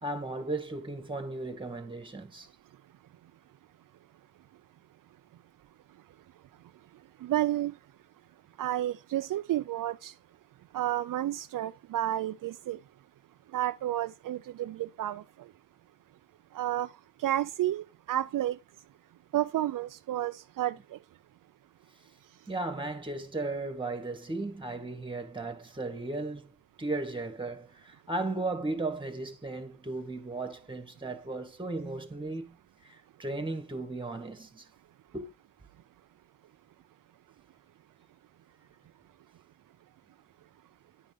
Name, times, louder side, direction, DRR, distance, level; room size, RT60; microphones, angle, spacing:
voice 1, 0.0-2.5 22.5-32.6 32.8-34.7 35.1-35.3, right 2 dB, 15° right, 2.0 m, -36 dB
voice 2, 7.2-7.7 8.6-10.1 10.7-12.8 13.5-15.2 16.5-16.9 17.2-18.6 19.3-21.0, right 13 dB, 70° right, 0.5 m, -31 dB
11.0 x 5.2 x 5.1 m
cardioid pair, 90°, 34 cm